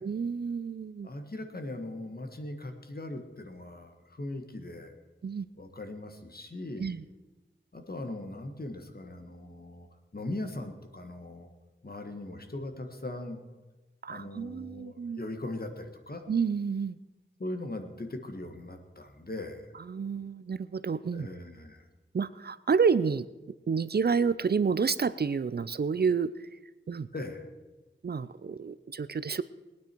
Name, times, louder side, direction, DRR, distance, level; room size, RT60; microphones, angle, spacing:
voice 1, 0.0-1.1 5.2-5.5 6.8-7.0 14.0-15.2 16.3-17.0 19.9-21.3 22.1-23.3 23.7-26.5 26.9-27.1 28.0-29.4, right 5 dB, 55° right, 16 dB, 0.5 m, -29 dB
voice 2, 1.0-4.9 5.6-6.9 7.7-11.5 11.8-13.4 14.1-16.2 17.4-19.7 21.1-21.9 27.1-27.5, left 2 dB, 50° left, 6 dB, 1.7 m, -40 dB
21.5 x 9.4 x 4.5 m, 1.2 s
wide cardioid pair, 55°, 20 cm